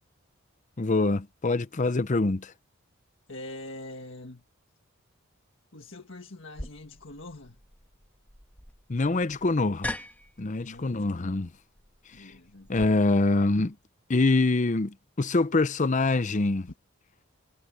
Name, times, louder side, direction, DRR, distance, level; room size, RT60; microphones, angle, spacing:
voice 1, 0.8-2.5 8.9-9.9 10.4-11.5 12.7-13.7 14.1-16.7, left 2 dB, 35° left, 0.7 m, -25 dB
voice 2, 3.3-4.4 5.7-7.6 10.6-11.6 12.1-12.7, left 2 dB, 65° left, 1.8 m, -44 dB
sound 1, 6.6-12.9, left 1 dB, 10° left, 1.6 m, -42 dB
head